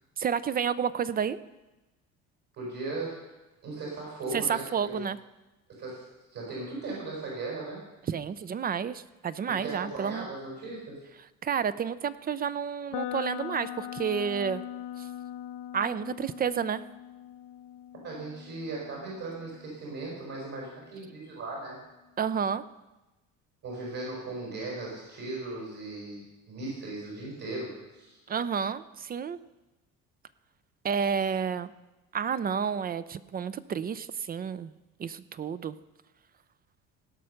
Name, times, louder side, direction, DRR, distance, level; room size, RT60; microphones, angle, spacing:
voice 1, 0.2-1.4 4.3-5.2 8.1-10.3 11.4-14.6 15.0-15.1 15.7-16.8 22.2-22.6 28.3-29.4 30.8-31.7 32.1-34.7 35.0-35.8, right 7 dB, 30° right, 16 dB, 0.4 m, -30 dB
voice 2, 2.5-3.2 3.6-5.0 5.7-7.9 9.5-11.0 18.0-21.8 23.6-28.2, right 2 dB, 60° right, -4 dB, 5.0 m, -38 dB
sound 1, 12.9-20.8, left 12 dB, 70° left, 0.5 m, -41 dB
16.5 x 5.7 x 6.5 m, 1.1 s
cardioid pair, 120°, 32 cm